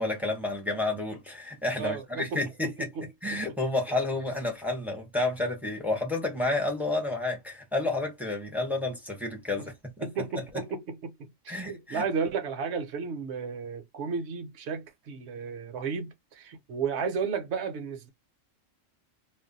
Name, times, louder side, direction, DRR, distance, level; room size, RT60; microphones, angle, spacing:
voice 1, 0.0-2.9 3.2-10.1 11.5-12.0, left 2 dB, ahead, 0.7 m, -30 dB
voice 2, 1.8-3.4 9.6-9.7 10.0-18.1, right 5 dB, 65° right, 0.9 m, -33 dB
2.4 x 2.1 x 3.9 m
omnidirectional pair, 1.3 m